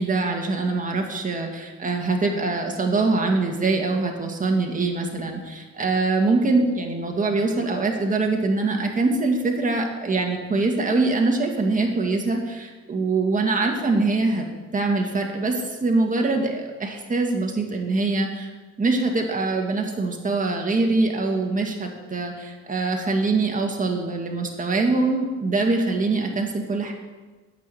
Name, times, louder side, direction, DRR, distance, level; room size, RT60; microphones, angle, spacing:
voice 1, 0.0-14.5 14.7-18.5 18.8-26.9, right 3 dB, 25° right, 2 dB, 1.9 m, -23 dB
12.5 x 6.0 x 8.4 m, 1.3 s
cardioid pair, 90°, 30 cm